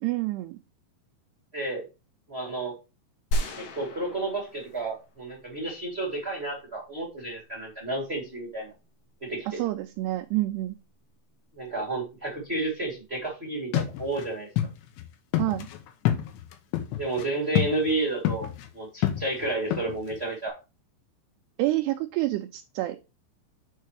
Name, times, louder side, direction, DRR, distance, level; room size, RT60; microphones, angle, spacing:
voice 1, 0.0-0.6 9.5-10.8 15.4-15.7 21.6-23.0, right 17 dB, 85° right, 6 dB, 2.4 m, -28 dB
voice 2, 1.5-1.8 2.3-2.7 3.6-8.7 9.2-9.6 11.5-14.5 17.0-20.5, right 2 dB, 45° right, -2 dB, 0.8 m, -31 dB
sound 1, 3.3-5.2 5.6-5.7, right 1 dB, 65° left, 3.3 m, -32 dB
sound 2, 13.7-14.3 14.6-14.7 15.0-15.1 15.3-17.3 17.6-17.9 18.3-18.7 19.0-20.2, left 12 dB, 80° left, 3.3 m, -27 dB
7.4 x 4.6 x 4.8 m, 0.29 s
omnidirectional pair, 5.2 m